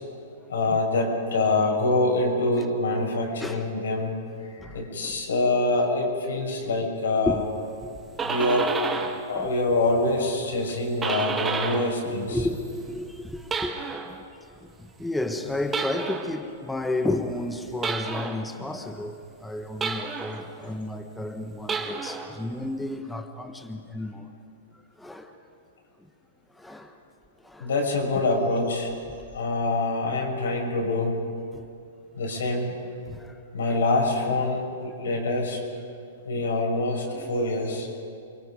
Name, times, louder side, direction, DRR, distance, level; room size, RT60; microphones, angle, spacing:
voice 1, 0.5-4.2 4.7-7.4 8.2-8.7 9.3-12.4 27.6-28.9 29.3-31.2 32.1-32.7 33.5-35.6 36.2-37.9, left 2 dB, 85° left, 0 dB, 6.7 m, -25 dB
voice 2, 4.6-5.2 7.3-7.4 7.8-7.9 9.3-9.5 12.0-14.2 14.5-14.7 15.0-24.3 24.7-25.3 26.6-26.9 27.4-27.7 31.5-31.6 33.1-33.4 33.7-33.8 35.0-35.2 37.1-37.4, left 2 dB, 5° left, 5 dB, 1.2 m, -32 dB
sound 1, 7.9-9.3 9.6-12.0 12.3-14.2 15.7-16.4 17.8-18.5 19.8-20.5 21.6-22.3, right 4 dB, 15° right, 1.7 m, -31 dB
28.5 x 22.5 x 5.3 m, 2.5 s
hypercardioid pair, 140°, 0 cm